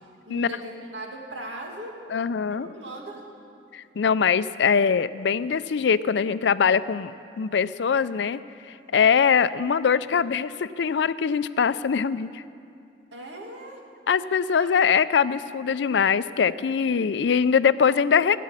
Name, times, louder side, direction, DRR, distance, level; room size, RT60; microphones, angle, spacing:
voice 1, 0.2-2.0 2.5-3.2 13.1-13.8 14.6-14.7, right 1 dB, 85° right, 0 dB, 2.3 m, -38 dB
voice 2, 2.1-2.7 3.7-8.4 8.7-12.4 14.1-18.4, left 6 dB, 75° left, 15 dB, 0.4 m, -22 dB
15.5 x 8.4 x 9.7 m, 2.5 s
head